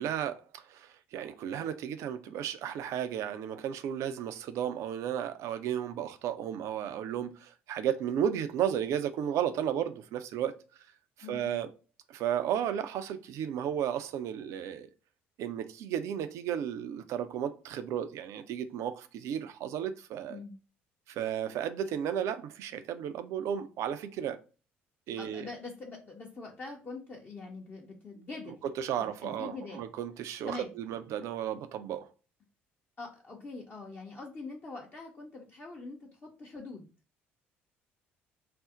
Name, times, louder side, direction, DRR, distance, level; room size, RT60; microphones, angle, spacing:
voice 1, 0.0-10.6 11.3-11.7 12.1-14.9 15.4-20.4 21.1-24.4 25.1-25.5 28.6-32.1, right 9 dB, 55° right, 0.4 m, -34 dB
voice 2, 11.2-11.6 20.3-20.6 25.2-28.6 29.0-29.8 30.4-30.7 33.0-36.9, left 3 dB, 30° left, 0.7 m, -44 dB
2.5 x 2.0 x 3.6 m
figure-of-eight pair, 50°, 6 cm